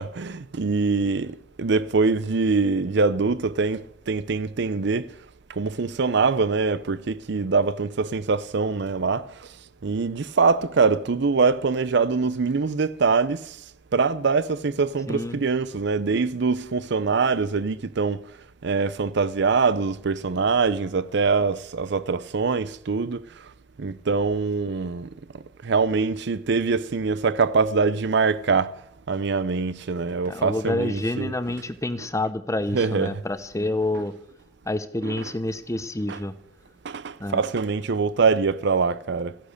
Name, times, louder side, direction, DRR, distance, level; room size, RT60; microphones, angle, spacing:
voice 1, 0.0-5.1 5.5-9.5 9.8-13.6 13.9-18.3 18.6-23.5 23.8-28.7 29.1-31.5 32.0-32.1 32.7-33.2 35.0-35.3 36.1-36.2 36.8-39.4, right 4 dB, 65° right, 0.6 m, -24 dB
voice 2, 15.1-15.4 30.3-34.1 34.7-36.3 37.2-37.4, left 2 dB, 15° left, 0.8 m, -28 dB
14.5 x 10.5 x 6.5 m
head